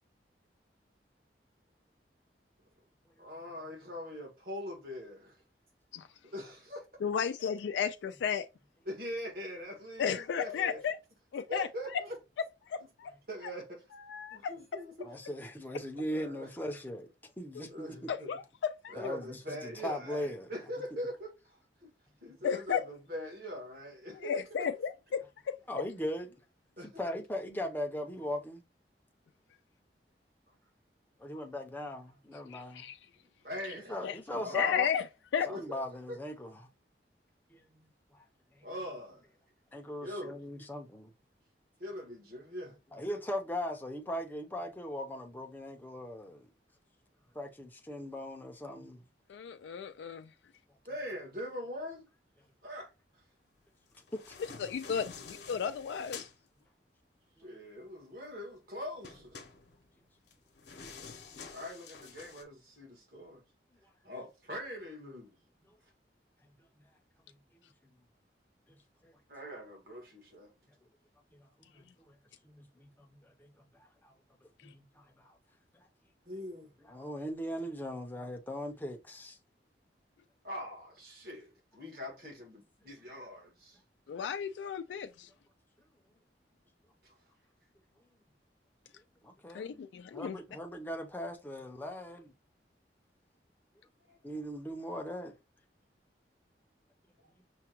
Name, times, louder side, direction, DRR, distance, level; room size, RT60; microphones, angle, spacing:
voice 1, 3.2-5.4 6.2-6.8 8.8-10.8 11.5-12.2 13.3-13.8 14.3-15.1 16.1-16.5 17.7-18.3 18.9-21.9 22.2-24.4 26.8-26.9 33.4-34.9 35.5-35.8 36.1-36.2 38.6-39.2 40.0-40.4 41.8-42.8 50.8-52.1 52.6-53.2 57.4-59.4 61.5-63.4 64.0-65.4 69.3-70.5 76.3-76.7 80.4-83.8 87.0-87.1 94.1-94.2, equal, 55° right, 1.5 m, -42 dB
voice 2, 7.0-8.5 10.0-11.0 11.3-12.0 12.6-13.1 13.9-14.5 17.6-17.7 18.1-19.0 22.4-22.9 24.1-25.6 32.5-33.0 34.0-34.2 34.5-35.0 35.3-35.5 49.3-50.3 54.6-56.3 74.6-74.7 84.1-85.3 89.5-90.4, left 7 dB, 90° left, 0.3 m, -34 dB
voice 3, 15.0-18.1 18.9-20.5 22.3-22.4 25.7-26.4 27.0-28.6 31.2-32.9 33.7-34.7 35.5-36.7 37.5-38.2 38.5-38.7 39.7-41.1 42.9-46.5 47.3-49.0 54.1-54.4 54.8-54.9 57.4-57.5 66.8-66.9 67.3-67.4 68.7-69.2 71.3-72.2 72.4-74.1 74.6-75.4 75.7-75.8 76.8-79.4 89.2-89.8 90.1-92.3 94.2-95.3, equal, 10° left, 0.6 m, -40 dB
sound 1, 53.9-56.4 59.0-62.4, left 5 dB, 75° left, 0.8 m, -49 dB
5.8 x 2.2 x 2.9 m
head